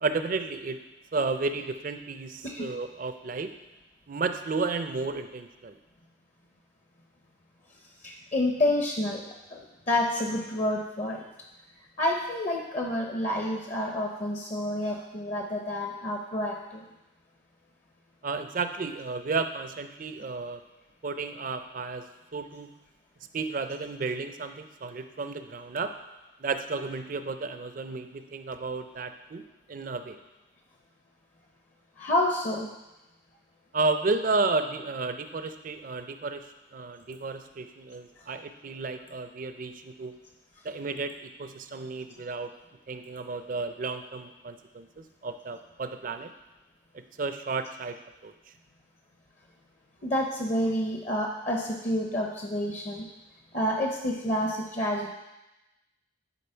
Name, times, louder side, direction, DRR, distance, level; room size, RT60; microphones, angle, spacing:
voice 1, 0.0-0.8 1.1-3.5 4.1-5.8 18.2-20.6 21.0-22.0 22.3-22.8 23.3-25.9 26.4-30.2 33.7-40.1 40.6-42.5 42.9-46.3 46.9-48.0 48.2-48.3, right 3 dB, 45° right, 9 dB, 0.4 m, -32 dB
voice 2, 8.0-11.3 12.0-16.8 32.0-32.7 50.0-53.1 53.5-55.1, left 1 dB, 35° left, 1 dB, 0.6 m, -29 dB
10.0 x 4.1 x 4.4 m, 0.99 s
head